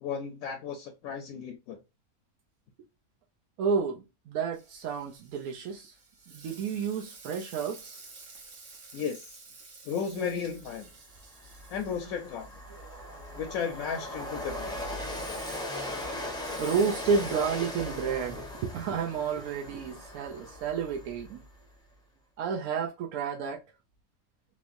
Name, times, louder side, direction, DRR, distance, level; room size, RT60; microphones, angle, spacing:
voice 1, 0.0-1.8 8.9-9.4 9.8-10.9 11.7-12.5 13.4-14.7, left 6 dB, 75° left, 1.0 m, -34 dB
voice 2, 3.6-6.0 6.3-8.0 12.7-13.3 15.9-16.2 16.6-21.4 22.4-23.6, right 6 dB, 80° right, 1.1 m, -31 dB
Frying (food), 4.5-14.2, right 3 dB, 55° right, 1.1 m, -52 dB
Train, 10.6-10.7 11.1-21.5, left 1 dB, 5° left, 0.5 m, -39 dB
3.1 x 3.1 x 2.5 m
omnidirectional pair, 1.5 m